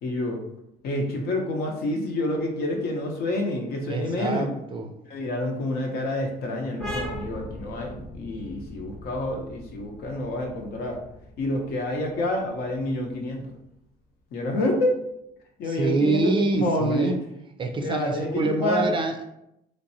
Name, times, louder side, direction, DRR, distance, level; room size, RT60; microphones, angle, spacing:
voice 1, 0.0-0.4 0.8-4.5 5.1-11.0 11.4-13.5 14.3-15.0 15.6-17.1 17.8-18.9, left 1 dB, 70° left, 2 dB, 0.7 m, -28 dB
voice 2, 3.9-4.9 15.7-17.2 17.6-19.2, right 3 dB, 30° right, 5 dB, 0.4 m, -26 dB
sound 1, 6.8-14.1, equal, 5° left, 0.7 m, -40 dB
3.2 x 2.6 x 2.7 m, 0.80 s
cardioid pair, 110°, 17 cm